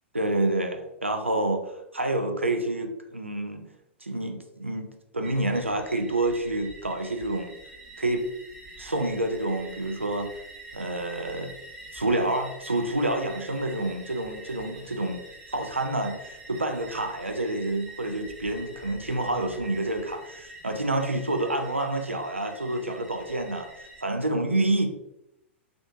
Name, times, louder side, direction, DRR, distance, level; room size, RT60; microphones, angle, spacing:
voice 1, 0.1-1.6 1.9-3.7 4.0-7.5 8.0-8.2 8.8-10.3 10.7-11.5 11.9-15.2 15.5-24.9, right 2 dB, 90° right, 5 dB, 0.4 m, -28 dB
sound 1, 5.2-24.0, right 2 dB, 10° right, 0.8 m, -46 dB
3.5 x 2.6 x 2.5 m, 0.86 s
figure-of-eight pair, 100°, 7 cm